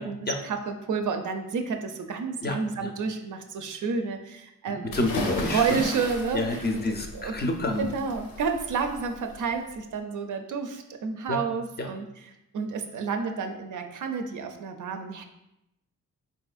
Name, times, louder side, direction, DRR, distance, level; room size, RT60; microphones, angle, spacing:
voice 1, 0.4-5.0 5.5-7.3 7.8-12.1 12.5-15.2, right 5 dB, 60° right, 5 dB, 0.5 m, -30 dB
voice 2, 2.4-2.9 4.8-5.9 6.3-7.9 11.3-11.4 11.8-11.9, left 2 dB, 30° left, 3 dB, 0.5 m, -28 dB
sound 1, 4.9-9.7, left 2 dB, 85° left, 0.7 m, -36 dB
3.7 x 2.6 x 2.3 m, 0.87 s
cardioid pair, 60°, 35 cm